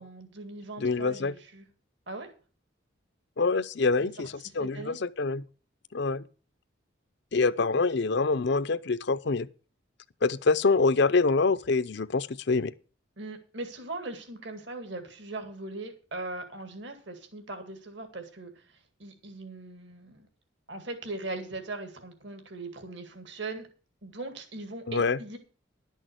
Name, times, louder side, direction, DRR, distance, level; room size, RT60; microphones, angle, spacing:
voice 1, 0.0-1.7 2.1-2.3 4.0-4.3 4.6-5.0 13.2-20.3 20.7-23.7 24.0-25.4, right 2 dB, 60° right, 2.1 m, -40 dB
voice 2, 0.8-1.3 3.4-5.4 5.9-6.2 7.3-9.5 10.2-12.7 24.9-25.2, left 4 dB, 60° left, 0.6 m, -25 dB
11.5 x 6.4 x 7.8 m
head